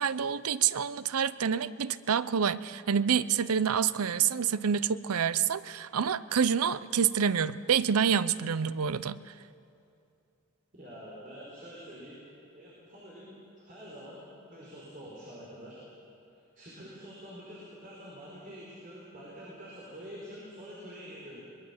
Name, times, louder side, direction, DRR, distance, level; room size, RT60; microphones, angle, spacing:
voice 1, 0.0-9.2, right 7 dB, 85° right, 16 dB, 0.6 m, -27 dB
voice 2, 10.7-12.2 12.5-15.8 16.3-21.4, equal, 35° right, -6 dB, 4.8 m, -46 dB
23.5 x 21.0 x 7.2 m, 2.6 s
head